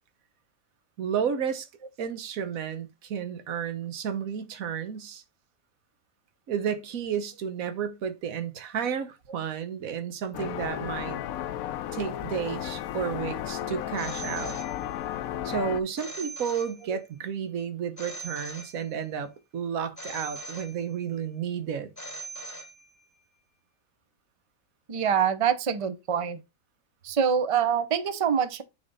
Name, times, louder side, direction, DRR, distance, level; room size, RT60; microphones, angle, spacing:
voice 1, 1.0-1.7 2.0-5.2 6.5-11.2 11.9-14.6 15.4-21.9, right 7 dB, 70° right, 1.4 m, -32 dB
sound 1, 10.3-15.8, left 11 dB, 75° left, 1.0 m, -34 dB
Telephone, 14.0-15.2 16.0-17.2 18.0-19.2 20.0-21.2 22.0-23.2, right 2 dB, 15° left, 0.9 m, -41 dB
voice 2, 24.9-26.4 27.0-28.6, right 7 dB, 35° right, 0.5 m, -25 dB
8.8 x 3.6 x 4.0 m
omnidirectional pair, 1.5 m